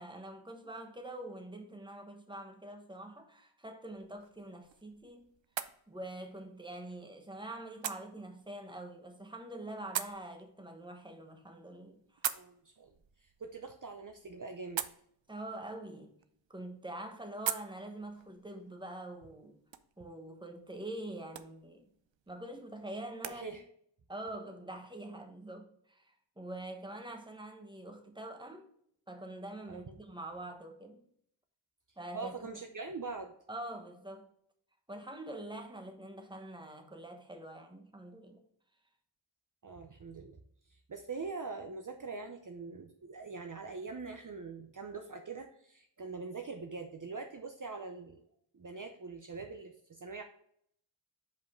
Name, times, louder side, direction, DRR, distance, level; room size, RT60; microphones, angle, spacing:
voice 1, 0.0-5.3 5.9-12.2 15.3-16.1 16.5-19.6 20.0-21.8 22.3-23.5 24.1-28.7 29.1-31.0 32.0-32.3 33.5-34.3 34.9-38.4, right 1 dB, 10° right, 1.1 m, -45 dB
sound 1, 3.9-23.4, right 9 dB, 80° right, 0.6 m, -45 dB
voice 2, 12.3-12.9 13.2-14.9 23.2-23.6 29.7-30.0 32.1-33.3 39.6-40.3 40.9-48.2 48.5-50.2, right 4 dB, 45° right, 0.7 m, -43 dB
5.2 x 5.2 x 4.5 m
wide cardioid pair, 55°, 45 cm